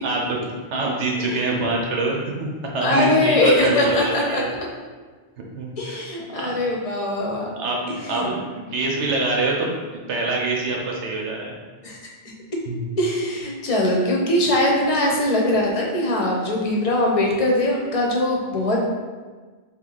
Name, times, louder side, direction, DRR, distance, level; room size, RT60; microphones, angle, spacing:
voice 1, 0.0-0.4 0.7-4.5 5.5-6.0 6.3-6.5 7.5-11.5 12.7-12.9, right 2 dB, 75° right, -1 dB, 1.1 m, -25 dB
voice 2, 2.8-4.4 5.8-7.4 7.9-8.3 11.8-12.0 13.0-18.8, left 1 dB, 35° left, -2 dB, 0.7 m, -21 dB
3.5 x 2.7 x 3.9 m, 1.4 s
omnidirectional pair, 1.2 m